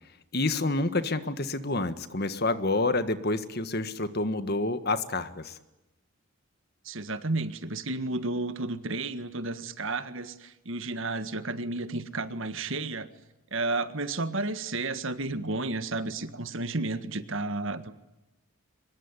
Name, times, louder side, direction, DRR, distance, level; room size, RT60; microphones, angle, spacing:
voice 1, 0.3-5.5, left 2 dB, 45° left, 11 dB, 1.6 m, -28 dB
voice 2, 6.8-13.1 13.5-18.0, right 2 dB, 60° right, 11 dB, 1.7 m, -32 dB
24.5 x 21.5 x 9.9 m, 0.99 s
head